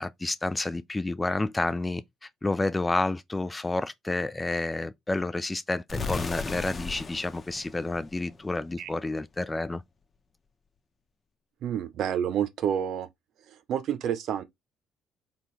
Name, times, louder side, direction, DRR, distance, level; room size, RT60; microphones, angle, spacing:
voice 1, 0.0-9.8, left 2 dB, 20° left, 0.5 m, -30 dB
sound 1, 5.9-8.8, left 4 dB, 35° left, 1.0 m, -36 dB
voice 2, 11.6-13.1 13.5-14.4, right 9 dB, 65° right, 0.6 m, -29 dB
4.1 x 3.6 x 3.2 m
hypercardioid pair, 50°, 0 cm